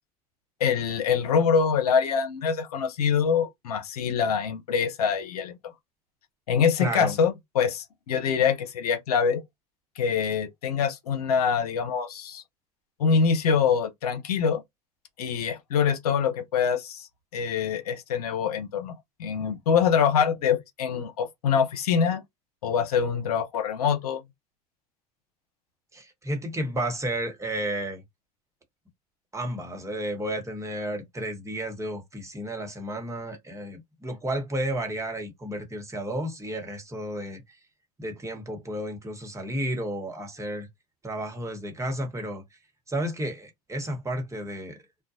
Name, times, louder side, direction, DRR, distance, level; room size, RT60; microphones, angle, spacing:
voice 1, 0.6-5.6 6.5-9.4 10.0-12.4 13.0-14.6 15.2-17.1 17.3-18.9 19.2-22.2 22.6-24.2, left 6 dB, 85° left, 0.7 m, -24 dB
voice 2, 6.8-7.2 25.9-28.0 29.3-37.6 38.0-40.7 41.0-42.4 42.9-44.8, right 1 dB, 15° right, 1.1 m, -32 dB
2.3 x 2.1 x 2.7 m
hypercardioid pair, 75°, 19 cm